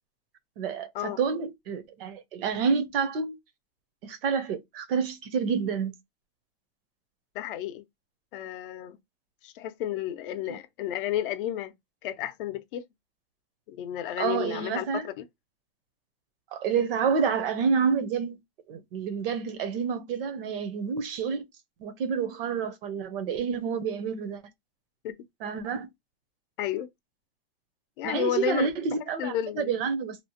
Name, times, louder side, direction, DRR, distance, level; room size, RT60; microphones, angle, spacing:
voice 1, 0.6-3.4 4.0-5.9 10.5-10.6 14.2-15.0 16.5-18.4 18.7-21.4 21.8-24.4 25.4-25.9 28.0-30.2, right 6 dB, 65° right, 0.8 m, -28 dB
voice 2, 7.3-7.8 8.3-9.0 9.4-11.7 12.0-12.8 13.7-15.2 25.0-25.2 26.6-26.9 28.0-28.7 29.2-29.7, left 11 dB, 55° left, 0.6 m, -32 dB
2.9 x 2.0 x 2.8 m
supercardioid pair, 155°, 31 cm